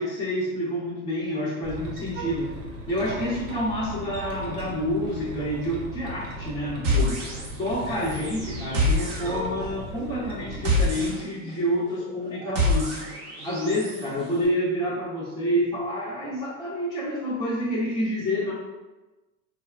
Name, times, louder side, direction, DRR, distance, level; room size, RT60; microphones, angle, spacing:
voice 1, 0.0-2.6 2.9-7.2 7.6-12.9 13.4-18.5, equal, 10° left, -10 dB, 0.6 m, -28 dB
sound 1, 1.6-11.1, equal, 70° right, 0.8 m, -37 dB
sound 2, 6.8-7.8 8.0-14.0, left 1 dB, 30° right, 0.7 m, -27 dB
3.3 x 2.1 x 2.4 m, 1.1 s
hypercardioid pair, 95°, 47 cm